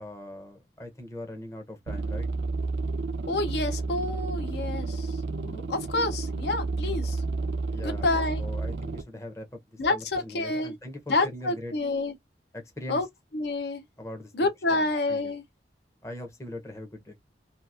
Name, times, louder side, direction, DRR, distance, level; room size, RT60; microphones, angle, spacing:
voice 1, 0.0-2.3 7.7-11.7 12.5-13.1 14.0-14.3 14.7-15.4 16.0-17.2, left 1 dB, 15° left, 0.6 m, -41 dB
sound 1, 1.9-9.0, right 3 dB, 85° right, 0.5 m, -31 dB
voice 2, 3.3-5.1 5.4-7.2 7.8-8.4 9.8-10.8 11.1-12.1 12.9-13.1 13.3-13.8 14.3-15.4, left 2 dB, 70° left, 0.6 m, -28 dB
2.8 x 2.4 x 2.4 m
head